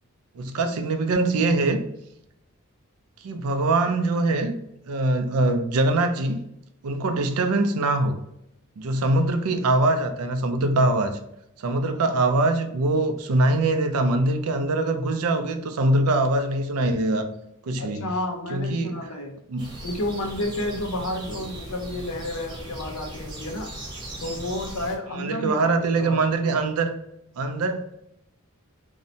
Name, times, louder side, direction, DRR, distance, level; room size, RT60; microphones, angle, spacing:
voice 1, 0.4-1.9 3.2-4.5 4.9-6.4 6.8-8.2 8.8-11.2 11.6-17.3 17.6-18.0 18.5-19.0 19.5-19.8 25.1-27.0 27.4-27.9, right 2 dB, 75° right, 0.4 m, -23 dB
voice 2, 17.8-19.4 19.8-23.7 24.2-26.2, left 1 dB, 70° left, 0.6 m, -31 dB
sound 1, 19.6-25.0, right 1 dB, 20° right, 0.6 m, -38 dB
2.6 x 2.1 x 2.6 m
head